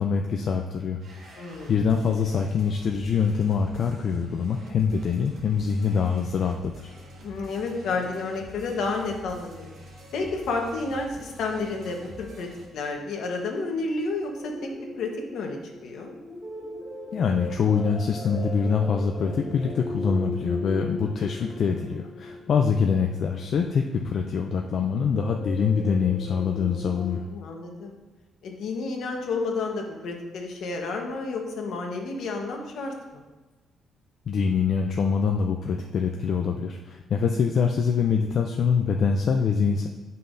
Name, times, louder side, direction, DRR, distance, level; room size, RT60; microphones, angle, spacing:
voice 1, 0.0-1.4 1.7-6.9 17.1-27.2 34.3-39.9, left 6 dB, 45° left, 3 dB, 0.4 m, -24 dB
sound 1, 1.0-12.7, equal, 55° right, 1.7 m, -46 dB
voice 2, 1.4-1.7 7.2-9.7 10.1-14.5 15.0-16.1 27.3-28.0 28.4-33.2, left 3 dB, 65° left, 2 dB, 1.1 m, -31 dB
sound 2, 14.4-24.0 25.0-27.2, left 2 dB, 10° right, 1.2 m, -38 dB
9.8 x 5.5 x 2.6 m, 1.2 s
cardioid pair, 175°, 0 cm